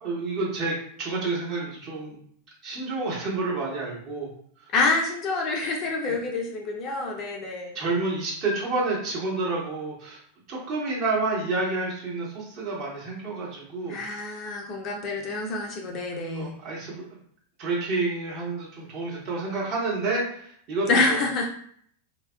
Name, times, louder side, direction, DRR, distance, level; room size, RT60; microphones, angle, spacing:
voice 1, 0.0-2.2 2.6-4.3 4.6-4.7 7.7-10.2 10.5-14.0 16.3-17.0 17.6-21.2, right 3 dB, 40° right, -4 dB, 1.0 m, -29 dB
voice 2, 4.7-7.8 13.9-16.5 20.9-21.5, left 3 dB, 35° left, 0 dB, 0.5 m, -27 dB
2.7 x 2.2 x 2.2 m, 0.63 s
figure-of-eight pair, 90°, 0 cm